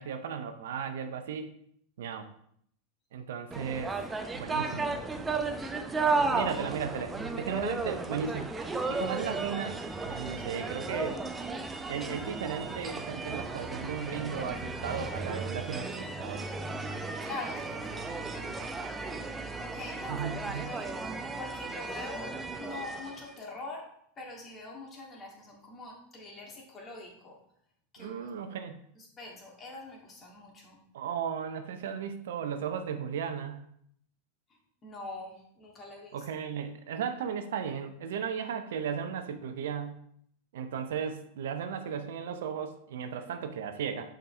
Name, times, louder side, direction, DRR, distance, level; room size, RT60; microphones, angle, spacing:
voice 1, 0.0-1.5 2.0-2.3 3.1-4.0 4.3-5.0 6.1-8.5 8.9-9.8 10.0-11.2 11.9-16.4 20.1-20.7 28.0-28.8 30.9-33.6 36.1-40.0 40.5-44.1, right 7 dB, 70° right, 8 dB, 0.6 m, -35 dB
sound 1, 3.5-23.3, right 3 dB, 15° right, 0.6 m, -34 dB
voice 2, 17.2-19.2 19.6-20.1 20.5-21.0 21.4-22.3 22.6-23.8 24.2-27.4 27.9-28.3 29.0-30.8 34.8-36.2, left 2 dB, 30° left, -1 dB, 2.1 m, -44 dB
6.5 x 5.1 x 3.2 m, 0.68 s
hypercardioid pair, 90°, 0 cm